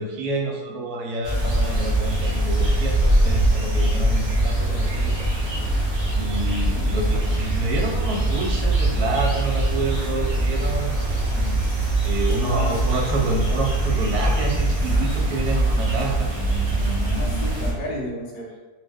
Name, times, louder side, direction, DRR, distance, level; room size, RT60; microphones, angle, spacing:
voice 1, 0.0-5.3 6.1-11.0 11.3-11.6 12.0-16.3, right 2 dB, 80° right, 1 dB, 1.1 m, -28 dB
sound 1, 1.2-17.7, right 1 dB, 50° right, 0.4 m, -22 dB
voice 2, 6.7-7.0 12.2-12.8 17.1-18.5, left 1 dB, 45° left, -4 dB, 0.7 m, -32 dB
2.8 x 2.0 x 3.3 m, 1.2 s
omnidirectional pair, 1.6 m